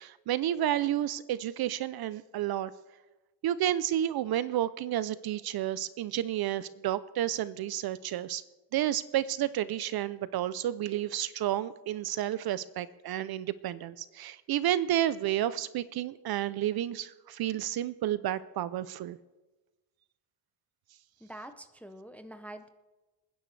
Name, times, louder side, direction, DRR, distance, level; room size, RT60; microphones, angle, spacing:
voice 1, 0.0-2.7 3.4-8.4 8.7-19.2, right 12 dB, 50° right, 16 dB, 0.5 m, -31 dB
voice 2, 21.2-22.7, right 1 dB, 5° left, 9 dB, 0.5 m, -45 dB
28.0 x 10.0 x 3.2 m, 1.1 s
cardioid pair, 155°, 49 cm